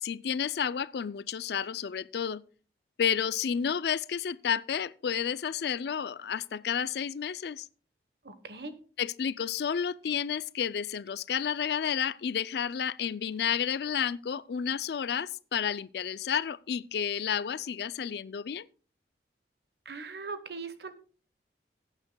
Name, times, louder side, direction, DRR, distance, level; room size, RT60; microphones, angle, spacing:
voice 1, 0.0-2.4 3.0-7.7 9.0-18.7, left 8 dB, 65° left, 0.4 m, -31 dB
voice 2, 8.2-8.7 19.8-20.9, right 4 dB, 65° right, 1.1 m, -40 dB
18.5 x 9.0 x 2.2 m
head